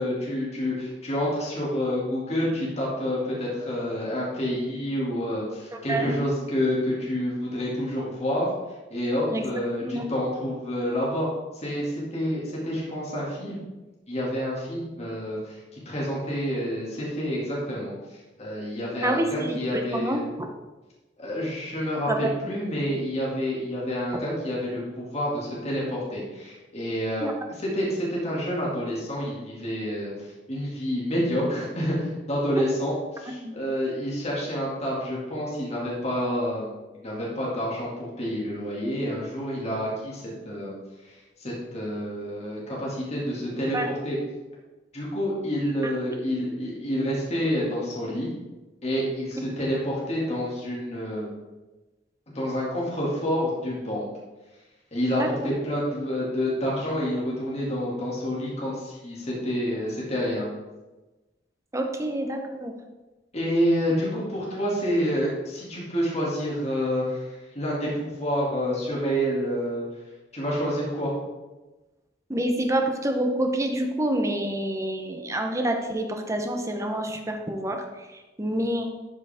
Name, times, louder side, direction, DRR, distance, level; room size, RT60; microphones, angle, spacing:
voice 1, 0.0-8.5 8.9-11.3 11.6-13.6 14.1-17.9 18.4-20.2 21.2-27.3 27.6-30.1 30.5-32.0 32.3-36.7 37.0-40.7 41.4-44.2 44.9-48.3 48.8-51.3 52.3-54.1 54.9-60.5 63.3-69.8 70.3-71.1, equal, 35° left, -6 dB, 2.3 m, -28 dB
voice 2, 19.0-20.5 22.1-22.3 27.2-27.4 32.6-32.7 33.4-33.6 43.7-43.9 45.8-45.9 55.2-55.3 61.7-62.7 72.3-78.9, right 1 dB, 15° right, 3 dB, 0.9 m, -27 dB
12.5 x 5.0 x 3.6 m, 1.1 s
head